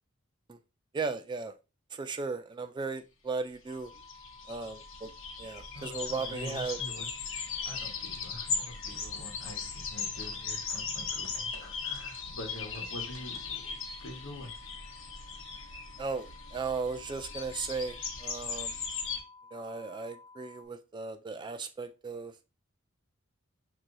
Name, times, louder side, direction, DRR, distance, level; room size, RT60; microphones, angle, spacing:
voice 1, 0.9-1.5 1.9-3.9 4.5-5.1 5.4-6.8 16.0-18.8 19.5-22.3, right 4 dB, 20° right, 0.3 m, -36 dB
sound 1, 3.7-19.2, left 5 dB, 85° left, 1.3 m, -38 dB
sound 2, 3.7-20.7, left 4 dB, 30° left, 0.8 m, -54 dB
voice 2, 5.7-7.1 7.6-13.7 14.0-14.5, left 1 dB, 65° left, 1.3 m, -45 dB
sound 3, 7.3-13.6, right 3 dB, 80° right, 0.9 m, -59 dB
6.1 x 2.9 x 2.6 m
head